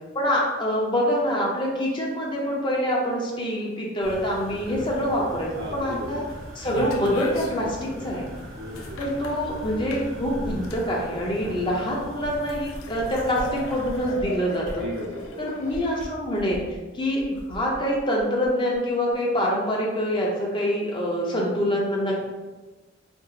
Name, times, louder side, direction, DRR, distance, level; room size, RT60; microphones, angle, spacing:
voice 1, 0.1-6.2 6.5-8.3 9.0-14.8 15.4-16.6 16.9-17.2 17.5-22.3, equal, 25° left, -3 dB, 0.5 m, -25 dB
sound 1, 4.0-14.1, equal, 90° right, 0.8 m, -40 dB
voice 2, 5.5-6.2 7.8-8.1 8.5-9.0 11.4-11.6 14.8-15.9 22.2-22.3, equal, 55° right, -2 dB, 0.6 m, -37 dB
sound 2, 6.6-16.0, left 2 dB, 90° left, 0.4 m, -39 dB
sound 3, 12.5-13.0 13.3-13.5 13.8-14.3 14.6-14.8 15.2-15.3 15.7-16.8 17.2-18.8 19.1-19.2, equal, 65° left, 0.8 m, -40 dB
2.6 x 2.4 x 3.8 m, 1.2 s
head